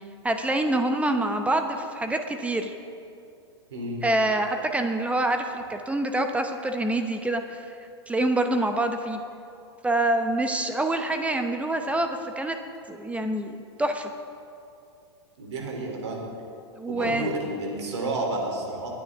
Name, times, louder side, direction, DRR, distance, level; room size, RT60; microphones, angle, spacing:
voice 1, 0.2-2.7 4.0-7.6 8.1-9.2 9.8-12.6 12.9-14.1 16.8-17.3, right 1 dB, 10° right, 6 dB, 0.8 m, -26 dB
voice 2, 3.7-4.0 15.4-16.2 16.9-18.9, right 2 dB, 75° right, 0 dB, 3.2 m, -31 dB
21.5 x 9.3 x 3.6 m, 2.6 s
hypercardioid pair, 105°, 14 cm